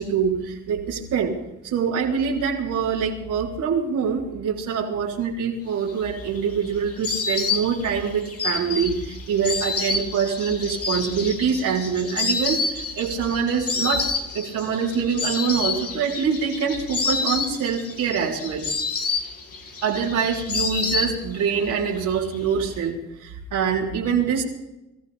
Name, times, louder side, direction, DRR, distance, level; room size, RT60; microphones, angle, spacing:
voice 1, 0.0-1.3 1.6-14.1 14.3-18.7 19.8-24.4, right 6 dB, 85° right, -4 dB, 3.9 m, -25 dB
Insect, 5.9-21.6 21.9-22.7, left 4 dB, 50° left, 2.9 m, -28 dB
25.0 x 14.5 x 3.5 m, 0.95 s
cardioid pair, 90°, 30 cm